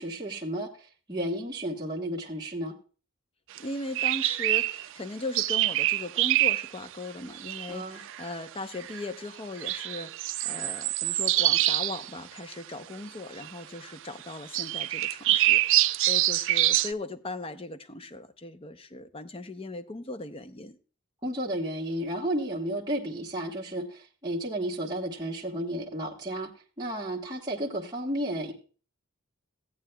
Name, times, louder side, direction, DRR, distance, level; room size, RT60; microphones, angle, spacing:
voice 1, 0.0-2.7 7.7-8.0 21.2-26.5 26.8-28.5, right 1 dB, 20° right, 1.1 m, -32 dB
voice 2, 3.6-20.8, left 2 dB, 25° left, 0.6 m, -38 dB
sound 1, 3.6-3.7 3.9-4.8 5.3-6.7 7.3-7.7 8.0-8.3 8.8-9.1 9.6-12.1 12.4-12.5 13.4-13.5 14.5-16.9, right 15 dB, 60° right, 0.4 m, -25 dB
16.0 x 8.7 x 2.2 m
head